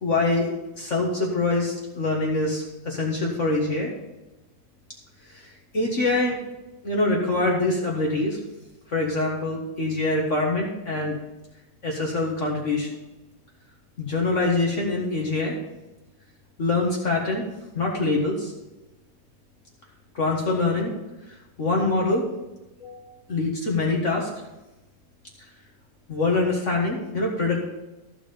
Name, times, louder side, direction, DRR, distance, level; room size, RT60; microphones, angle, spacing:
voice 1, 0.0-3.9 5.3-6.4 6.8-8.4 8.9-11.2 11.8-13.0 14.0-15.6 16.6-17.4 17.7-18.5 20.1-20.9 21.3-22.2 22.8-24.3 26.1-27.6, left 2 dB, 45° left, -2 dB, 1.7 m, -24 dB
14.5 x 4.9 x 5.3 m, 1.0 s
omnidirectional pair, 1.8 m